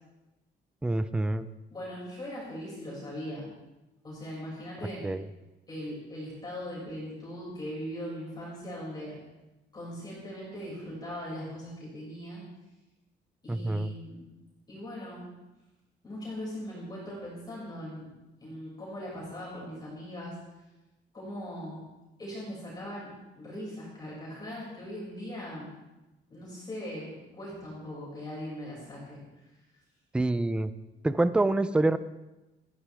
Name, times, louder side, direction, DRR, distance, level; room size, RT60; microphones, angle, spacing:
voice 1, 0.8-1.5 5.0-5.2 13.5-13.9 30.1-30.7 31.0-32.0, right 2 dB, 5° right, 13 dB, 0.4 m, -26 dB
voice 2, 1.7-3.4 4.0-5.1 5.7-9.2 9.7-12.4 13.4-14.2 14.7-15.2 16.0-18.1 18.4-20.4 21.1-21.8 22.2-23.1 23.3-25.7 26.3-29.2, equal, 20° left, -6 dB, 5.9 m, -40 dB
21.5 x 14.5 x 3.5 m, 1.0 s
cardioid pair, 175°, 19 cm